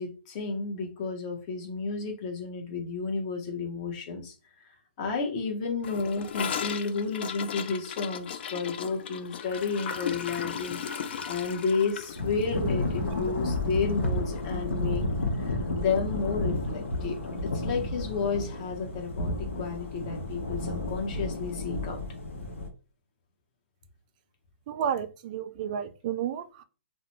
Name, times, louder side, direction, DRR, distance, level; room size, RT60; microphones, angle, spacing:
voice 1, 0.0-4.3 5.0-15.1 15.4-22.0, left 4 dB, 35° left, 0.8 m, -32 dB
Gurgling / Toilet flush, 5.8-14.1 14.4-14.5 14.8-15.2 15.5-15.6 15.9-16.0 16.9-17.0, left 7 dB, 55° left, 0.4 m, -37 dB
Thunder / Rain, 12.1-22.7, left 2 dB, 90° left, 0.8 m, -31 dB
voice 2, 24.7-26.6, right 8 dB, 40° right, 0.4 m, -32 dB
2.4 x 2.1 x 3.0 m
hypercardioid pair, 145°, 7 cm